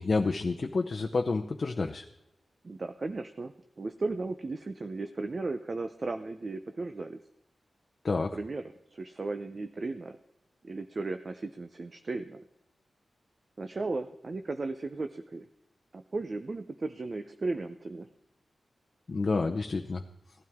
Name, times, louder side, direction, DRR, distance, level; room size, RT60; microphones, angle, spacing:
voice 1, 0.0-2.0 8.0-8.4 19.1-20.0, left 3 dB, 45° left, 2 dB, 0.7 m, -29 dB
voice 2, 2.6-7.2 8.3-10.2 10.6-12.4 13.6-15.5 15.9-18.1, right 3 dB, 40° right, 8 dB, 0.6 m, -36 dB
17.5 x 12.5 x 3.6 m, 0.84 s
wide cardioid pair, 115°, 0 cm